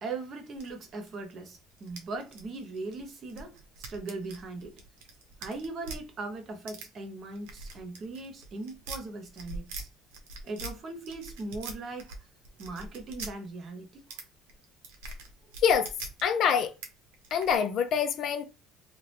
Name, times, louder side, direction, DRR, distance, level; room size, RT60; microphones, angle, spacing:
voice 1, 0.0-3.6 3.9-4.7 5.4-9.9 10.4-12.1 12.6-14.0, right 3 dB, 45° right, 1.0 m, -39 dB
sound 1, 0.6-1.3 1.7-6.0 6.7-6.9 7.4-9.8 10.1-10.8 11.0-12.2 12.4-13.3 14.1-14.2 14.5-16.2 16.8-16.9 17.1-17.6, right 3 dB, 85° right, 0.8 m, -43 dB
voice 2, 15.6-15.9 16.2-16.7 17.3-18.4, left 7 dB, 60° left, 0.6 m, -25 dB
2.9 x 2.4 x 3.3 m
supercardioid pair, 80°, 0 cm